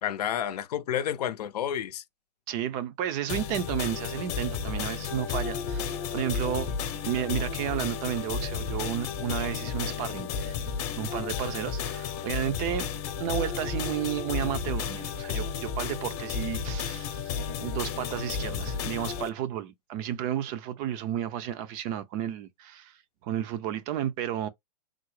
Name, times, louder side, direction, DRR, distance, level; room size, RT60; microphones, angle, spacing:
voice 1, 0.0-2.0, left 10 dB, 75° left, 0.5 m, -30 dB
voice 2, 2.5-6.7 7.1-10.6 11.0-12.9 13.2-23.0 23.2-24.5, right 11 dB, 30° right, 0.4 m, -32 dB
sound 1, 3.3-19.3, left 6 dB, 40° left, 0.8 m, -32 dB
3.6 x 2.0 x 3.1 m
hypercardioid pair, 135°, 21 cm